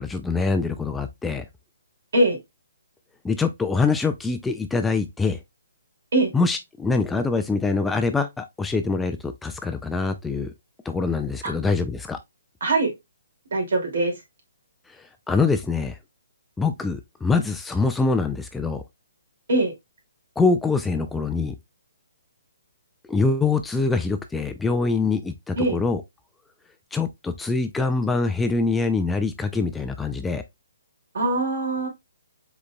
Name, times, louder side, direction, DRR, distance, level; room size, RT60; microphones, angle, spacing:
voice 1, 0.0-1.4 3.2-5.4 6.3-10.5 10.9-12.2 14.9-16.0 16.6-18.8 20.4-21.5 23.1-26.0 26.9-30.4, left 4 dB, 5° left, 0.3 m, -24 dB
voice 2, 12.6-12.9 13.5-14.1 19.5-19.7 25.6-25.8 31.1-31.9, right 2 dB, 65° right, 2.5 m, -22 dB
5.0 x 4.0 x 2.3 m
hypercardioid pair, 155°, 0 cm